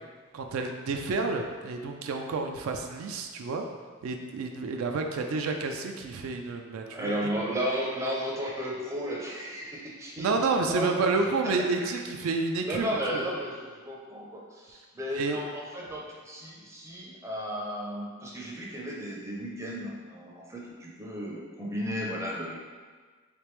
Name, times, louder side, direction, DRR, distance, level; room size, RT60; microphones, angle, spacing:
voice 1, 0.3-3.6 4.0-7.1 10.2-13.3 15.1-15.4, right 3 dB, 80° right, 4 dB, 0.3 m, -30 dB
voice 2, 6.9-12.0 12.7-22.6, equal, 15° right, -3 dB, 0.5 m, -34 dB
3.3 x 3.3 x 3.1 m, 1.5 s
head